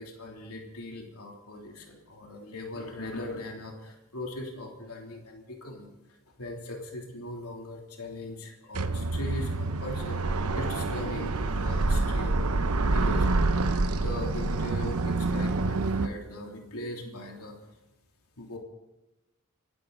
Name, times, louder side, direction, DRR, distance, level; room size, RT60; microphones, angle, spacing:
voice 1, 0.0-5.9 6.4-12.5 12.8-17.6 18.4-18.6, left 1 dB, 90° left, 0 dB, 3.3 m, -40 dB
sound 1, 8.7-16.1, right 3 dB, 85° right, 0.9 m, -27 dB
26.5 x 12.0 x 4.1 m, 0.99 s
head